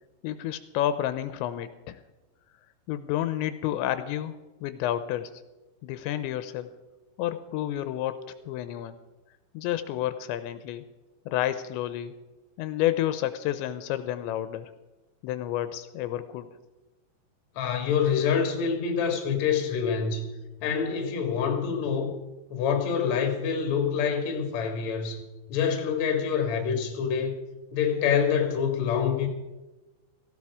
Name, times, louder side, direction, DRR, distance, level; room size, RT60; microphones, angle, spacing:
voice 1, 0.2-2.0 2.9-5.3 5.8-6.7 7.2-9.0 9.5-10.9 11.3-12.1 12.6-14.7 15.2-16.5, left 12 dB, 85° left, 12 dB, 2.9 m, -30 dB
voice 2, 17.6-20.3 20.6-22.1 22.5-25.2 25.5-27.4 27.7-29.3, left 7 dB, 50° left, 4 dB, 2.4 m, -26 dB
17.5 x 15.5 x 4.9 m, 1.1 s
omnidirectional pair, 5.2 m